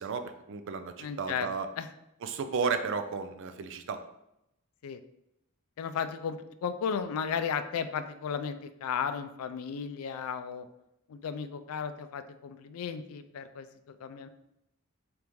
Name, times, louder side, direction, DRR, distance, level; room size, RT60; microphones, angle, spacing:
voice 1, 0.0-1.7 2.2-4.0, right 5 dB, 60° right, 9 dB, 0.4 m, -33 dB
voice 2, 1.0-1.5 1.8-1.9 4.8-5.0 5.8-10.7 11.1-14.3, left 7 dB, 80° left, 11 dB, 0.3 m, -35 dB
3.8 x 3.5 x 3.0 m, 0.85 s
head